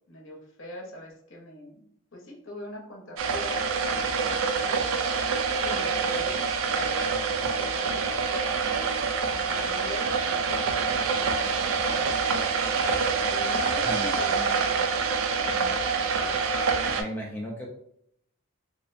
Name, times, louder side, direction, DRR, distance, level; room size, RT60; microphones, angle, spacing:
voice 1, 0.1-1.8 2.1-4.9 5.6-6.4 6.7-7.0 7.5-8.8 9.3-12.2 13.3-15.8, left 1 dB, 60° left, -1 dB, 0.7 m, -42 dB
sound 1, 3.2-17.0, right 5 dB, 70° right, 0.3 m, -26 dB
voice 2, 13.7-14.5 16.1-16.4 17.0-17.7, equal, 10° left, -3 dB, 0.3 m, -37 dB
2.4 x 2.0 x 2.5 m, 0.69 s
head